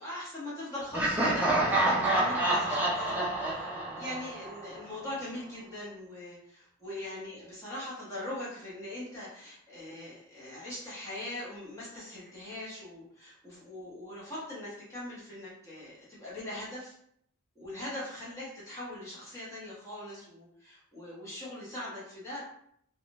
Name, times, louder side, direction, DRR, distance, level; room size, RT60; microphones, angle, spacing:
voice 1, 0.0-3.1 3.4-17.0 17.5-22.4, left 1 dB, 15° left, -8 dB, 1.1 m, -41 dB
Laughter, 0.9-4.8, right 1 dB, 10° right, 0.4 m, -28 dB
3.5 x 2.4 x 2.5 m, 0.69 s
head